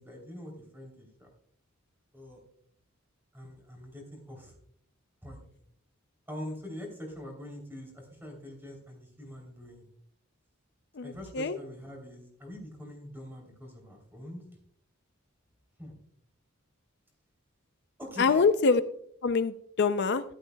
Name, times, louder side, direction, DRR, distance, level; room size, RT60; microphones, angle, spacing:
voice 1, 0.0-1.3 2.1-2.4 3.3-4.5 5.2-5.4 6.3-9.9 11.0-14.4 15.8-16.0 18.0-18.4, left 1 dB, 10° right, 1 dB, 3.2 m, -44 dB
voice 2, 11.0-11.6 18.2-18.8 19.2-20.2, left 4 dB, 55° left, 11 dB, 0.5 m, -25 dB
14.0 x 12.0 x 2.2 m, 0.66 s
head